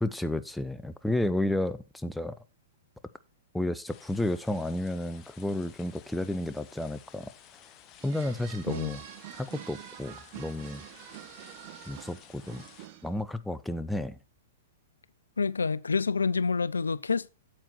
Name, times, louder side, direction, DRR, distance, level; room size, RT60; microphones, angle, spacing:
voice 1, 0.0-2.4 3.5-7.3 8.0-9.0 9.4-10.8 11.9-12.6 13.0-14.2, left 1 dB, 5° left, 0.7 m, -32 dB
sound 1, 3.9-12.9, left 10 dB, 30° left, 1.2 m, -55 dB
sound 2, 8.0-13.2, right 12 dB, 50° right, 1.5 m, -47 dB
voice 2, 15.4-17.3, left 5 dB, 90° left, 0.4 m, -28 dB
8.9 x 7.8 x 4.4 m
hypercardioid pair, 115°, 0 cm